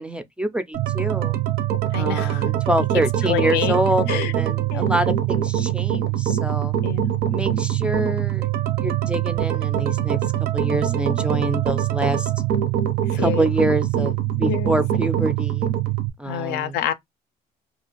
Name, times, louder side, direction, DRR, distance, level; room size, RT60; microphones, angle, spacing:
voice 1, 0.0-1.4 1.9-6.8 7.3-8.5 8.8-10.2 10.5-12.3 13.2-14.1 14.4-15.7 16.2-16.8, right 1 dB, 5° right, 0.3 m, -26 dB
sound 1, 0.7-16.1, right 12 dB, 65° right, 0.5 m, -23 dB
voice 2, 1.9-2.5 3.2-3.8 4.1-4.3 4.7-4.9 6.8-7.2 13.1-13.5 14.3-14.7 16.3-16.9, left 11 dB, 80° left, 0.4 m, -27 dB
2.5 x 2.4 x 2.9 m
cardioid pair, 110°, 17 cm